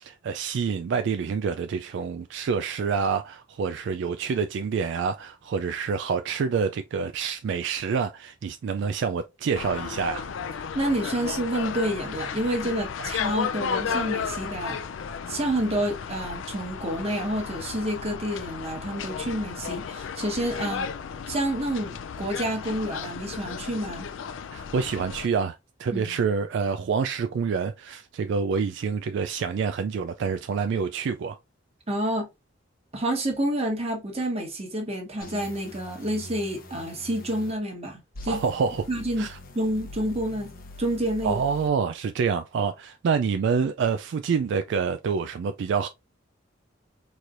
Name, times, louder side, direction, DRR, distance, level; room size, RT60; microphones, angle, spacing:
voice 1, 0.0-10.3 24.5-31.4 38.3-38.9 39.2-39.4 41.2-45.9, right 5 dB, 65° right, 0.3 m, -27 dB
sound 1, 9.5-25.3, left 6 dB, 70° left, 0.4 m, -34 dB
voice 2, 10.7-14.8 15.3-20.9 21.3-24.1 25.9-26.2 31.9-32.3 32.9-38.4 38.9-39.3 39.5-40.5 40.8-41.4, right 1 dB, 30° right, 1.3 m, -29 dB
sound 2, 35.2-37.5 38.1-41.7, left 2 dB, 45° left, 0.8 m, -43 dB
4.3 x 3.2 x 2.5 m
head